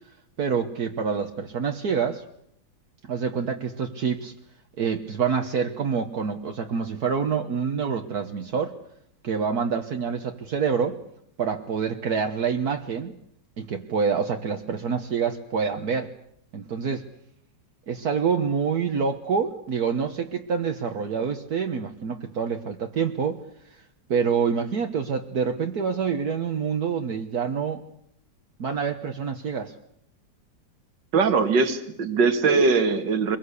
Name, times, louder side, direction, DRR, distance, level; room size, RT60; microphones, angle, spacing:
voice 1, 0.4-2.2 3.0-4.3 4.8-8.8 9.2-11.0 11.4-13.2 13.6-16.1 16.5-17.1 17.9-23.4 24.1-27.8 28.6-29.7, right 6 dB, 60° right, 5 dB, 1.7 m, -26 dB
voice 2, 31.1-33.4, right 4 dB, 80° right, 9 dB, 2.5 m, -21 dB
25.0 x 22.0 x 8.3 m, 0.70 s
omnidirectional pair, 1.9 m